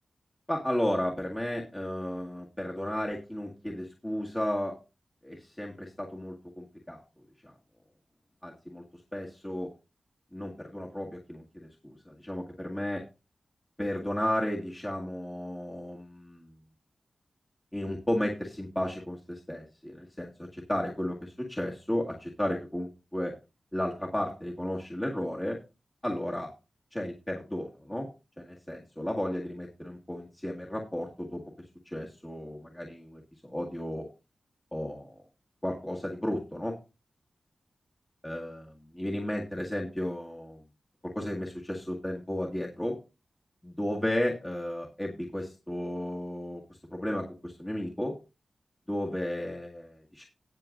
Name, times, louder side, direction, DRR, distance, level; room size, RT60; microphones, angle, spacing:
voice 1, 0.5-4.8 5.2-7.0 7.4-7.5 8.4-9.7 10.3-13.0 13.8-16.5 17.7-23.3 23.7-25.6 26.0-26.5 26.9-28.1 28.4-31.4 31.9-34.1 34.7-35.2 35.6-36.8 38.2-40.6 41.0-43.0 43.6-48.2 48.9-50.3, left 1 dB, 10° left, -2 dB, 1.9 m, -34 dB
18.5 x 6.7 x 2.6 m, 0.29 s
wide cardioid pair, 145°, 0 cm